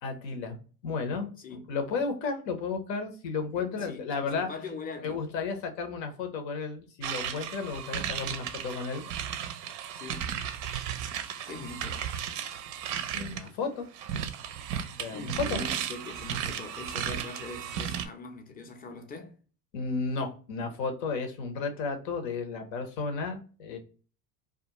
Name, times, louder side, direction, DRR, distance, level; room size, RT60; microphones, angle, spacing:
voice 1, 0.0-0.6 0.8-4.5 5.0-9.0 13.1-13.9 15.0-15.6 19.7-23.8, left 4 dB, 80° left, 0.8 m, -33 dB
voice 2, 3.5-5.2 9.9-10.4 11.5-12.1 15.1-19.3, left 3 dB, 20° left, 0.5 m, -42 dB
sound 1, 7.0-13.5 13.9-18.0, right 9 dB, 40° right, 0.4 m, -35 dB
2.4 x 2.2 x 2.9 m
hypercardioid pair, 85°, 50 cm